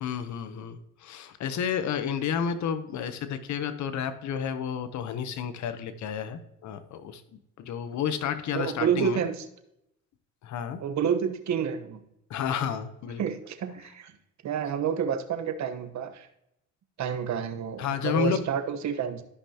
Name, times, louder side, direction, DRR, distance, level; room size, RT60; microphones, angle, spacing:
voice 1, 0.0-7.2 7.6-9.2 10.4-10.8 12.3-13.2 17.8-18.4, left 8 dB, 70° left, 11 dB, 0.8 m, -31 dB
voice 2, 8.5-9.5 10.8-12.0 13.2-14.1 14.4-16.3 17.0-19.2, right 7 dB, 65° right, 9 dB, 1.1 m, -29 dB
13.0 x 5.6 x 2.8 m, 0.81 s
cardioid pair, 90°, 30 cm